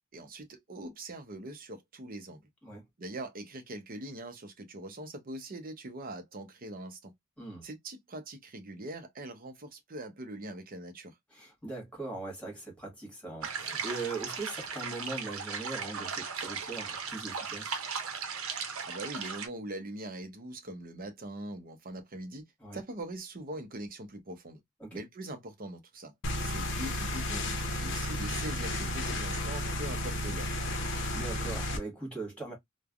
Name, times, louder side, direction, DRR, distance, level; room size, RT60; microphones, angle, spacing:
voice 1, 0.1-2.4 3.0-7.1 7.6-11.2 18.9-22.4 22.7-24.6 24.9-26.1 26.4-30.5, right 1 dB, 45° right, 0.7 m, -42 dB
voice 2, 7.4-7.7 11.3-17.8 22.6-22.8 24.8-25.0 30.8-32.5, right 3 dB, 5° left, 1.4 m, -40 dB
sound 1, 13.4-19.5, right 6 dB, 85° right, 0.7 m, -37 dB
sound 2, 26.2-31.8, left 1 dB, 60° left, 0.7 m, -33 dB
3.2 x 2.1 x 2.3 m
head